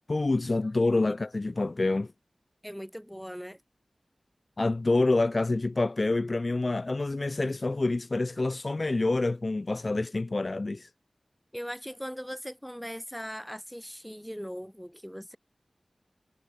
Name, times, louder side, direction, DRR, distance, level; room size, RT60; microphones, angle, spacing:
voice 1, 0.1-2.1 4.6-10.9, left 2 dB, 45° left, 1.4 m, -27 dB
voice 2, 2.6-3.6 11.5-15.4, equal, ahead, 4.4 m, -39 dB
wide cardioid pair, 70°, 0 cm